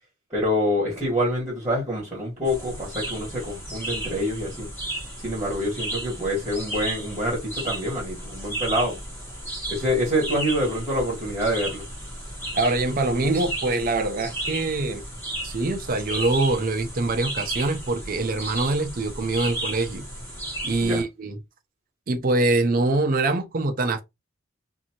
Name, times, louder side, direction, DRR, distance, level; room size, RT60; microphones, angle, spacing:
voice 1, 0.3-4.7 5.2-9.0 9.7-11.8 20.8-21.0, equal, 15° right, 1.4 m, -26 dB
sound 1, 2.4-21.0, right 1 dB, 10° left, 1.2 m, -34 dB
voice 2, 12.5-15.0 15.4-20.1 20.6-21.4 22.1-24.0, right 2 dB, 45° right, 0.5 m, -24 dB
2.6 x 2.6 x 2.8 m
head